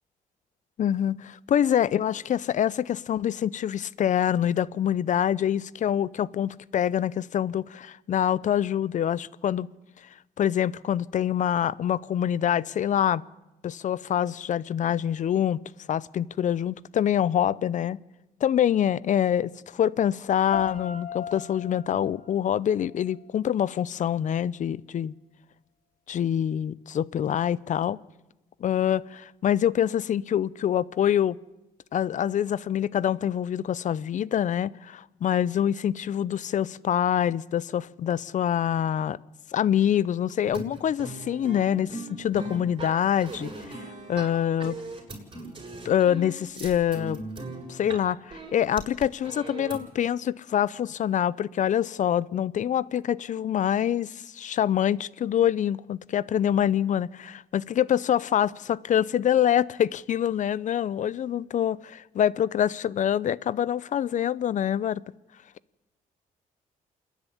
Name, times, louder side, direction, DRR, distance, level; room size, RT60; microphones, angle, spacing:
voice 1, 0.8-9.7 10.4-13.2 13.6-15.6 15.9-18.0 18.4-25.1 26.1-28.0 28.6-31.4 31.9-39.2 39.5-43.5 44.1-44.8 45.8-47.2 47.7-65.0, left 10 dB, 55° left, 0.6 m, -25 dB
sound 1, 20.5-23.5, left 7 dB, 80° left, 2.8 m, -38 dB
sound 2, 40.4-48.0 48.3-49.9, right 2 dB, 35° right, 7.3 m, -39 dB
28.0 x 10.5 x 9.9 m
cardioid pair, 90°, 15 cm